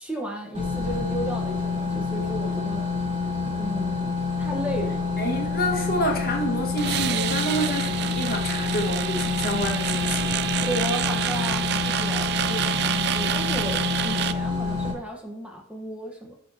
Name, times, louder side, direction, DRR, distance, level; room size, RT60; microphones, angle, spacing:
voice 1, 0.0-2.8 3.5-5.0 10.7-16.4, right 1 dB, 5° right, 1.2 m, -34 dB
sound 1, 0.5-14.9, left 4 dB, 30° right, 3.7 m, -28 dB
voice 2, 5.2-10.3, equal, 50° left, 1.7 m, -28 dB
sound 2, 6.8-14.3, right 10 dB, 55° right, 0.4 m, -28 dB
13.5 x 6.9 x 2.9 m
head